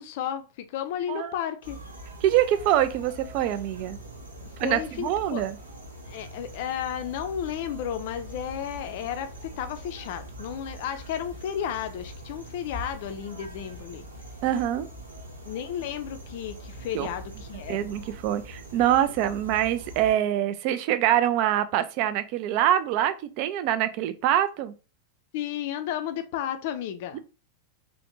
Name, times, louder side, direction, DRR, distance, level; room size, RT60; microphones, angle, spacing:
voice 1, 0.0-1.8 4.6-5.4 6.1-14.1 15.4-17.9 25.3-27.2, left 10 dB, 50° left, 0.4 m, -33 dB
sound 1, 1.6-20.1, right 1 dB, 80° right, 0.7 m, -43 dB
voice 2, 2.2-4.0 4.6-5.5 14.4-14.9 16.9-17.1 17.7-24.7 27.1-27.2, right 11 dB, 45° right, 0.3 m, -25 dB
3.2 x 2.1 x 2.9 m
figure-of-eight pair, 90°, 0 cm